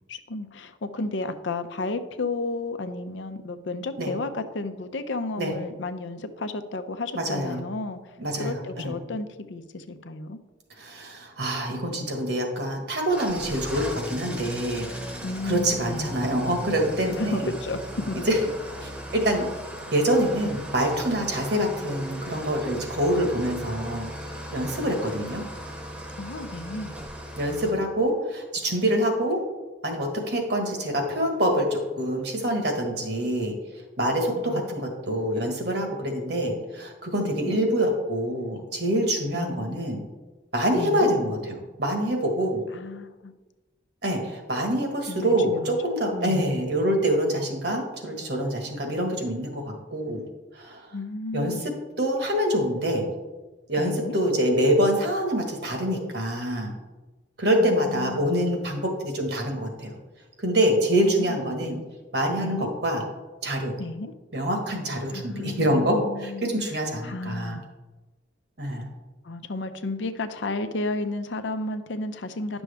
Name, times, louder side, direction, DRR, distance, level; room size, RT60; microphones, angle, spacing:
voice 1, 0.1-10.4 15.2-16.2 17.1-18.2 26.2-26.9 34.4-34.7 37.2-37.6 39.3-39.8 40.8-41.1 42.7-43.3 45.1-45.7 46.1-46.5 50.9-51.6 53.8-54.2 57.6-58.3 61.0-61.8 62.3-62.7 63.8-64.1 65.1-66.8 67.0-67.6 69.2-72.6, left 2 dB, 80° left, 9 dB, 0.6 m, -33 dB
voice 2, 7.1-7.6 8.2-8.9 10.8-14.9 15.4-17.5 18.1-18.4 18.8-19.5 19.9-24.1 24.5-25.4 27.4-29.4 29.8-33.5 34.0-40.0 40.5-42.6 44.0-50.2 50.5-50.9 51.3-51.7 52.0-53.1 53.7-56.7 57.4-59.9 60.4-61.8 62.1-63.0 63.4-63.8 64.3-67.6 68.6-68.9, equal, 60° right, 2 dB, 1.5 m, -25 dB
Engine starting / Idling, 13.1-27.7, equal, 5° right, 0.9 m, -37 dB
10.5 x 6.1 x 3.5 m, 1.2 s
head